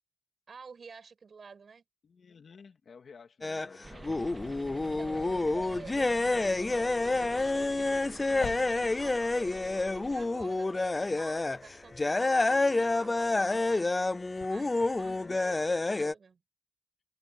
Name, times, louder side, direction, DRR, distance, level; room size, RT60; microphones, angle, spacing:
voice 1, 0.5-1.8 4.7-13.9 14.4-16.4, right 5 dB, 40° right, 5.3 m, -50 dB
voice 2, 2.0-5.4 14.9-15.4, left 5 dB, 45° left, 2.4 m, -54 dB
sound 1, 3.4-3.7 4.0-11.6 11.9-16.1, left 2 dB, 20° left, 0.4 m, -28 dB
sound 2, 3.8-15.9, left 8 dB, 80° left, 6.4 m, -53 dB
sound 3, 3.8-10.3, right 2 dB, 20° right, 3.2 m, -48 dB
wide cardioid pair, 165°, 0 cm